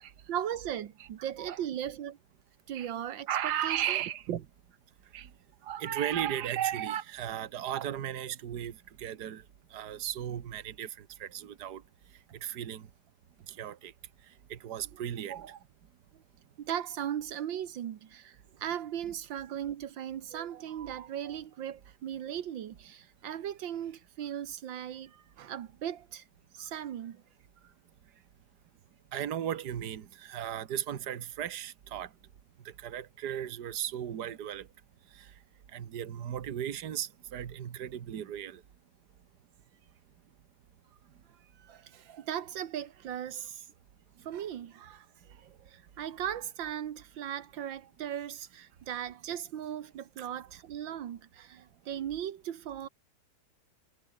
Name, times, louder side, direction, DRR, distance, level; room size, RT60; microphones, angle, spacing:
voice 1, 0.3-2.2 2.7-4.0 4.3-4.4 15.3-15.6 16.6-26.2 26.5-27.2 41.6-43.7 44.3-52.9, right 10 dB, 85° right, 1.9 m, -38 dB
voice 2, 3.3-4.3 5.1-5.3 5.6-9.4 9.7-11.8 12.4-12.9 13.5-13.9 14.5-15.4 29.1-32.1 32.7-34.7 35.2-35.3 35.7-38.6 50.2-50.3, right 10 dB, 65° right, 1.8 m, -35 dB
omnidirectional pair, 2.0 m